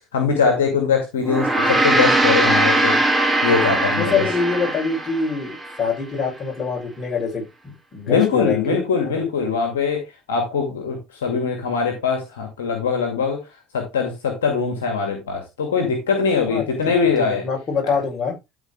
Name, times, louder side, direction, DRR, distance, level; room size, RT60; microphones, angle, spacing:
voice 1, 0.1-3.0 3.4-4.2 8.1-13.4 13.7-17.4 17.8-18.0, left 5 dB, 80° left, 2.2 m, -22 dB
Gong, 1.2-5.8, right 2 dB, 10° right, 2.9 m, -20 dB
voice 2, 4.0-8.8 9.0-9.2 16.5-18.4, left 5 dB, 40° left, 6.4 m, -25 dB
12.5 x 4.8 x 3.4 m
hypercardioid pair, 65°, 0 cm